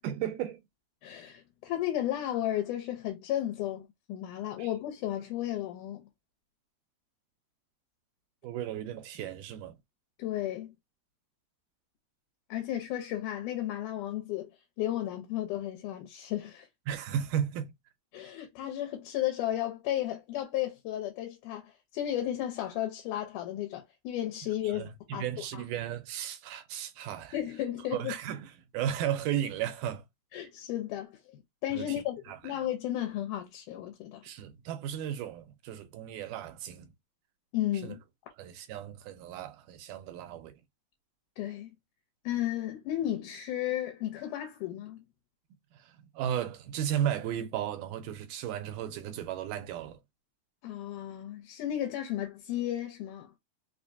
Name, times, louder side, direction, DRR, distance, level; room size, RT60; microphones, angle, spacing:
voice 1, 0.0-0.7 4.6-4.7 8.4-9.8 16.9-17.7 24.6-27.4 27.9-30.0 31.7-32.4 34.2-36.9 37.8-38.0 38.4-40.5 45.7-50.0, right 10 dB, 85° right, 2.3 m, -35 dB
voice 2, 1.0-6.1 10.2-10.7 12.5-14.5 14.8-16.7 18.1-25.6 27.3-28.1 30.3-34.2 37.5-38.0 41.4-41.7 42.2-45.0 50.6-53.3, left 12 dB, 85° left, 2.3 m, -34 dB
5.2 x 2.2 x 2.6 m
omnidirectional pair, 3.6 m